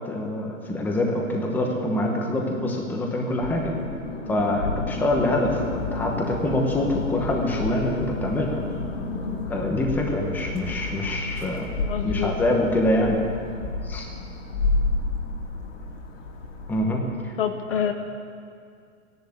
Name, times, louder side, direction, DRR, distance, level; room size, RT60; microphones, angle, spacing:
voice 1, 0.0-3.7 4.3-8.6 9.5-11.7 12.0-13.2 13.8-14.1 16.7-17.3, left 1 dB, 5° left, 0 dB, 1.0 m, -25 dB
sound 1, 3.4-16.8, left 3 dB, 65° left, 3.1 m, -31 dB
voice 2, 11.8-12.3 17.4-17.9, left 9 dB, 45° left, 8 dB, 0.8 m, -26 dB
15.0 x 11.0 x 8.5 m, 2.3 s
hypercardioid pair, 155°, 40 cm